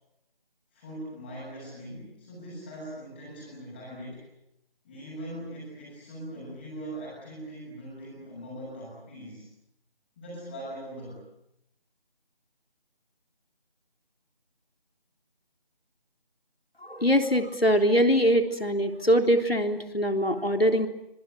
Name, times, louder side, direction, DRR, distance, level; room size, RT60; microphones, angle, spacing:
voice 1, 0.7-4.2 4.8-9.4 10.2-11.2, right 1 dB, 10° left, -8 dB, 7.3 m, -41 dB
voice 2, 16.8-20.9, equal, 85° left, 6 dB, 3.6 m, -23 dB
25.0 x 24.5 x 9.1 m, 0.85 s
figure-of-eight pair, 165°, 29 cm